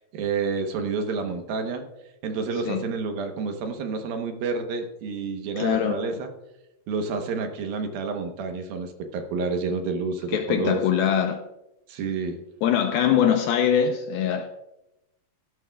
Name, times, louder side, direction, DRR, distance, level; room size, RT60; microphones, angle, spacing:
voice 1, 0.1-1.8 2.2-6.3 6.9-10.8 11.9-12.4, right 4 dB, 70° right, 2.5 m, -29 dB
voice 2, 5.6-6.0 10.3-11.4 12.6-14.5, left 8 dB, 85° left, 2.2 m, -22 dB
16.5 x 12.0 x 2.3 m
omnidirectional pair, 5.1 m